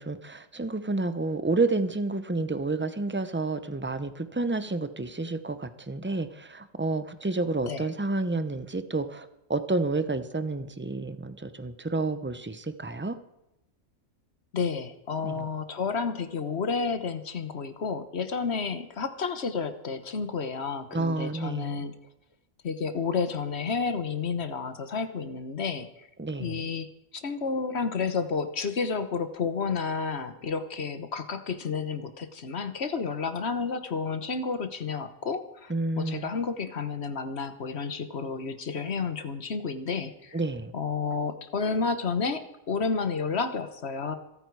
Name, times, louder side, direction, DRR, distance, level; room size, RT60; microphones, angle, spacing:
voice 1, 0.0-13.2 15.2-15.5 20.9-21.8 26.2-26.7 35.7-36.3 40.3-40.7, right 3 dB, 15° right, 11 dB, 0.5 m, -30 dB
voice 2, 14.5-21.9 22.6-26.1 26.4-40.4 40.7-44.2, left 5 dB, 55° left, 10 dB, 1.3 m, -31 dB
26.5 x 8.9 x 4.7 m, 0.88 s
omnidirectional pair, 1.4 m